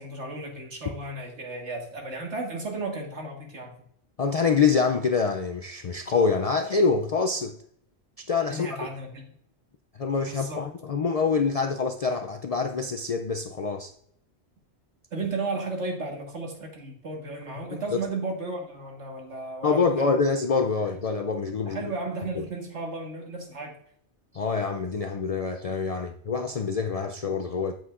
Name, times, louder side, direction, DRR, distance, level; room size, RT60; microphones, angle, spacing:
voice 1, 0.0-3.8 8.5-9.3 10.3-10.6 15.1-20.1 21.6-23.7, right 2 dB, 80° right, 1.9 m, -34 dB
voice 2, 4.2-7.6 8.3-8.7 10.0-13.9 19.6-21.8 22.4-22.5 24.3-27.8, left 5 dB, 60° left, 0.4 m, -25 dB
8.3 x 7.4 x 2.5 m
omnidirectional pair, 1.2 m